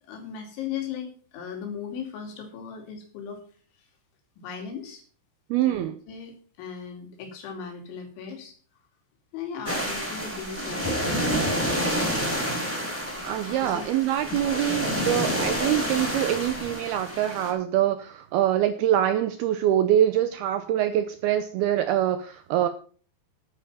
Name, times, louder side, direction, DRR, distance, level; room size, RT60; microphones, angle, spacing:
voice 1, 0.1-3.4 4.4-5.0 5.6-5.8 6.1-8.5 9.3-11.0 11.6-12.5 13.6-13.8 15.2-15.5, left 6 dB, 85° left, 3 dB, 5.1 m, -37 dB
voice 2, 5.5-6.0 13.2-22.7, right 11 dB, 85° right, 10 dB, 2.2 m, -24 dB
sound 1, 9.7-17.5, equal, 5° left, 3.9 m, -28 dB
11.0 x 9.3 x 5.6 m, 0.42 s
omnidirectional pair, 5.3 m